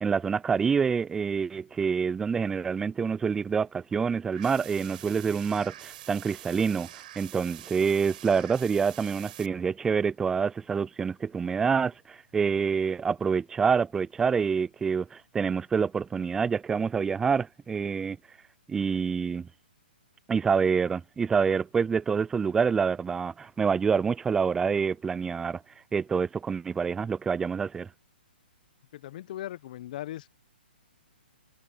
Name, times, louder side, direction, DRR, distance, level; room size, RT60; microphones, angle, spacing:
voice 1, 0.0-18.2 18.7-19.5 20.3-25.6 25.9-27.9, right 6 dB, 10° right, 0.3 m, -27 dB
sound 1, 4.3-9.5, right 13 dB, 50° right, 7.4 m, -46 dB
voice 2, 28.9-30.3, left 13 dB, 50° left, 0.9 m, -38 dB
hypercardioid pair, 140°, 6 cm